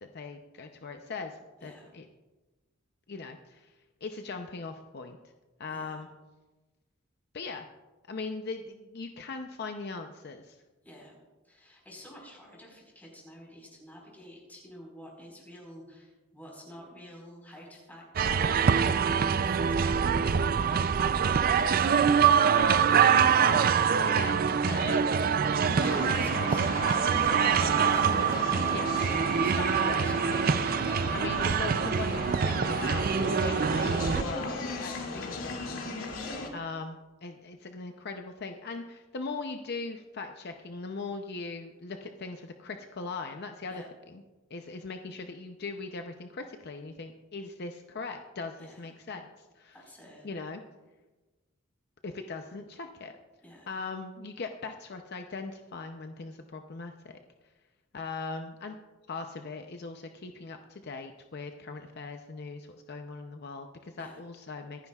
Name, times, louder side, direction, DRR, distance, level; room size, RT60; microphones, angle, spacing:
voice 1, 0.0-2.1 3.1-3.7 4.0-5.2 5.6-6.1 7.3-7.7 8.1-10.6 22.5-25.1 25.6-25.7 26.1-26.2 28.7-28.9 29.6-30.1 31.1-35.8 36.5-43.8 44.1-44.2 44.5-49.3 49.6-49.8 50.2-50.6 52.0-53.1 53.7-57.2 57.9-58.8 59.1-64.9, left 4 dB, 55° left, 5 dB, 0.6 m, -39 dB
voice 2, 5.7-6.1 10.8-11.2 11.4-21.1 24.1-24.2 25.6-30.3 34.7-35.3 43.7-43.9 48.6-48.8 49.7-50.3 53.4-53.7 64.0-64.2, equal, 10° left, -2 dB, 4.5 m, -49 dB
sound 1, 18.2-34.2, right 7 dB, 45° right, 0.4 m, -25 dB
sound 2, 25.8-36.5, left 2 dB, 90° left, 2.2 m, -36 dB
26.0 x 9.7 x 2.4 m, 1.2 s
head